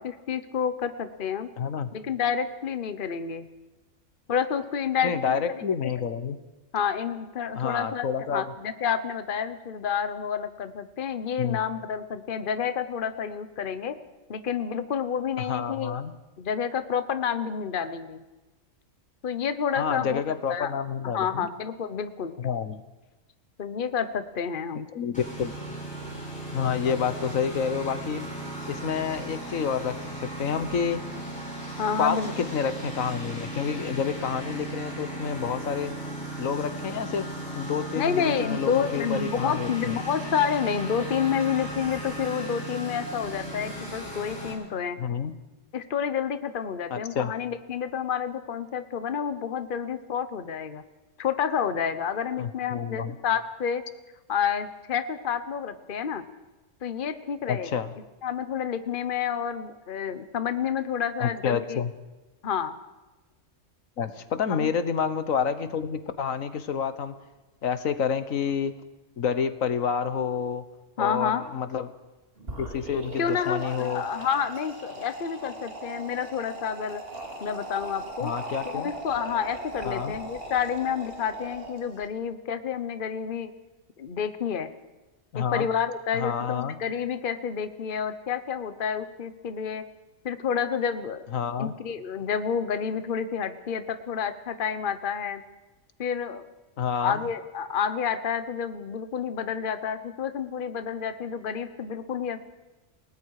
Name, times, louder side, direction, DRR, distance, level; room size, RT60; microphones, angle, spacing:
voice 1, 0.0-1.5 1.9-3.5 4.3-5.4 6.7-14.0 14.3-15.9 16.4-18.2 19.2-20.2 20.5-20.7 21.0-22.3 23.6-24.9 26.8-26.9 31.8-32.5 37.9-45.0 45.7-50.8 51.2-53.8 54.3-56.2 56.8-57.8 58.2-61.8 62.4-62.8 64.5-64.7 71.0-71.4 73.2-77.0 77.4-78.3 78.6-83.5 84.0-84.7 85.3-89.8 90.2-91.2 91.6-95.4 96.0-96.4 97.0-102.4, left 7 dB, 45° left, 11 dB, 1.1 m, -29 dB
voice 2, 1.6-1.9 5.0-6.4 7.5-8.4 11.4-11.6 15.4-16.1 19.7-21.5 22.4-22.8 24.9-25.5 26.5-28.3 28.7-31.0 32.0-35.9 36.4-37.3 37.5-39.9 45.0-45.3 46.9-47.3 52.4-53.1 57.5-57.9 61.2-61.9 64.0-67.1 67.6-68.7 69.2-70.6 71.0-71.9 72.6-74.0 78.2-78.9 79.8-80.1 85.3-85.7 86.1-86.8 91.3-91.7 96.8-97.2, left 7 dB, 85° left, 11 dB, 1.6 m, -29 dB
Engine, 25.1-44.5, right 1 dB, 5° left, 6.8 m, -36 dB
sound 1, 72.4-82.1, right 2 dB, 45° right, 2.9 m, -39 dB
29.5 x 18.5 x 4.9 m, 1.1 s
omnidirectional pair, 1.4 m